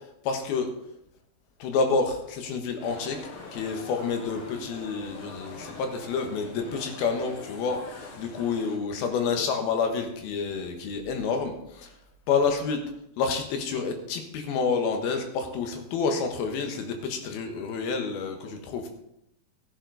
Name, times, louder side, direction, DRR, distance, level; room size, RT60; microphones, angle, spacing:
voice 1, 0.2-0.7 1.6-3.2 3.5-11.9 12.3-12.8 13.2-18.9, left 5 dB, 80° left, 5 dB, 3.2 m, -28 dB
sound 1, 2.8-8.8, left 3 dB, 55° left, 1.9 m, -43 dB
14.0 x 9.1 x 4.0 m, 0.80 s
omnidirectional pair, 4.4 m